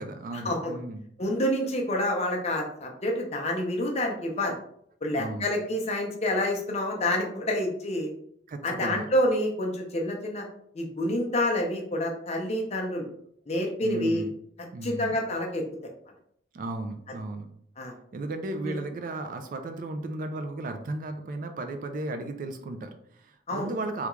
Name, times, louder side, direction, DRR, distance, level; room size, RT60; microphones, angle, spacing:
voice 1, 0.0-1.0 5.1-5.5 8.5-9.1 13.8-14.3 14.7-15.1 16.5-17.5 18.1-24.1, right 2 dB, 45° right, 7 dB, 0.3 m, -35 dB
voice 2, 1.2-4.5 5.0-8.1 8.6-10.5 10.7-13.1 13.5-14.2 14.8-15.6 17.8-17.9 18.6-18.7 23.5-23.7, left 1 dB, 35° left, 1 dB, 0.6 m, -28 dB
3.4 x 2.4 x 3.0 m, 0.68 s
head